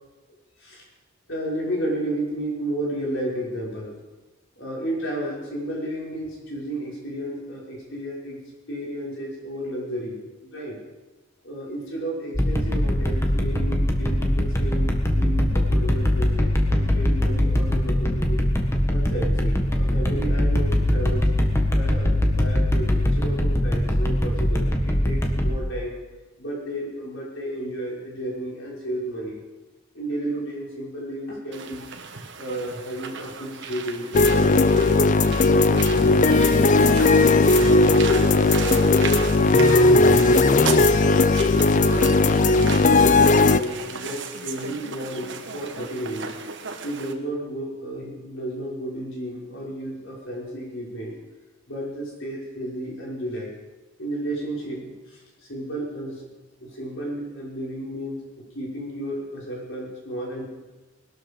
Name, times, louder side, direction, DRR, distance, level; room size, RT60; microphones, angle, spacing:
voice 1, 1.3-4.0 4.6-8.4 8.7-10.8 11.4-18.5 18.9-21.3 21.7-26.0 26.4-29.4 29.9-31.9 32.4-37.2 37.6-40.1 41.7-42.8 43.2-46.3 46.8-51.2 51.7-53.5 54.0-56.2 56.6-60.4, right 1 dB, 60° left, -4 dB, 5.5 m, -32 dB
sound 1, 12.3-25.5, left 1 dB, 10° left, 1.5 m, -22 dB
sound 2, 31.5-47.1, right 6 dB, 55° right, 1.4 m, -36 dB
sound 3, 34.1-43.6, left 3 dB, 35° left, 0.5 m, -17 dB
20.5 x 12.5 x 5.3 m, 1.2 s
head